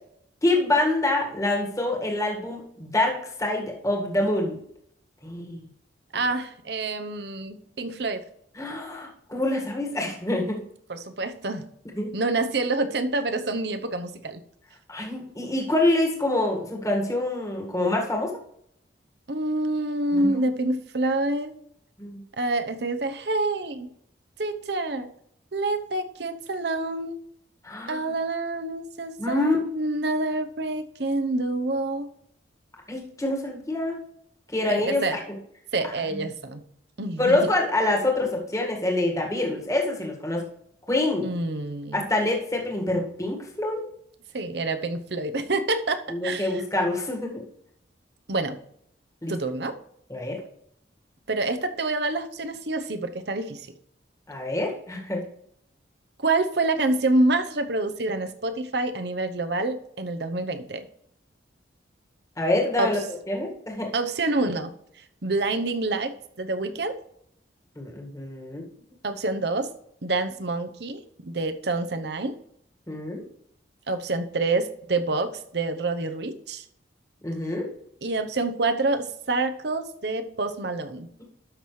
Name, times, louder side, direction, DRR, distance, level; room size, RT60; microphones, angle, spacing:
voice 1, 0.4-4.6 5.2-5.6 8.6-10.6 12.0-12.1 14.9-18.3 20.1-20.3 22.0-22.2 27.6-28.1 29.2-29.6 32.9-34.0 34.5-35.2 36.1-36.2 37.2-40.5 40.9-41.3 41.9-43.9 46.1-47.4 49.2-49.3 50.1-50.4 54.3-55.2 62.4-63.0 63.3-63.9 67.8-68.6 72.9-73.2 77.2-77.7, left 2 dB, 20° left, 0 dB, 1.7 m, -26 dB
voice 2, 6.1-8.2 10.9-11.6 12.1-14.4 19.3-21.5 22.4-23.9 24.4-25.1 25.5-27.2 27.9-32.1 34.7-35.2 35.7-36.6 37.0-37.5 41.2-42.0 44.3-46.6 48.3-48.6 49.3-49.8 51.3-53.7 56.2-60.9 62.8-62.9 63.9-64.7 65.2-67.0 69.0-69.7 70.0-72.3 73.9-76.6 78.0-81.1, right 2 dB, 65° right, 8 dB, 0.8 m, -27 dB
12.5 x 6.0 x 3.2 m, 0.70 s
head